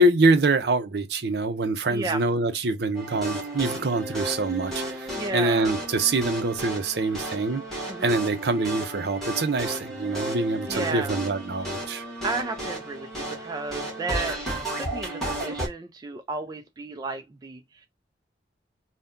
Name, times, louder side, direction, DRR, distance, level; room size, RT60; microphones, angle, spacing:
voice 1, 0.0-7.6 8.0-12.0, right 2 dB, 60° right, 0.6 m, -25 dB
voice 2, 1.9-2.2 5.1-5.7 7.9-8.2 10.7-11.2 12.2-14.4 14.7-17.9, right 3 dB, 20° right, 0.3 m, -33 dB
Goofy Type Beat, 2.9-15.7, right 1 dB, ahead, 1.1 m, -33 dB
2.7 x 2.1 x 3.5 m
head